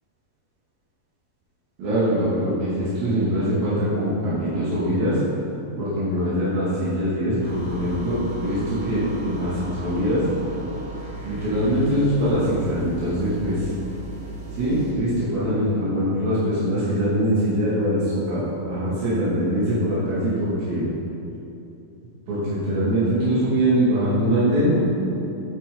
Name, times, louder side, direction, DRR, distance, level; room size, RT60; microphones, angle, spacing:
voice 1, 1.8-5.2 5.8-10.3 11.2-13.7 14.6-20.9 22.3-24.9, equal, 80° right, -11 dB, 4.1 m, -23 dB
sound 1, 7.4-15.0, right 2 dB, 30° right, 0.5 m, -36 dB
11.0 x 8.8 x 3.8 m, 2.9 s
omnidirectional pair, 4.2 m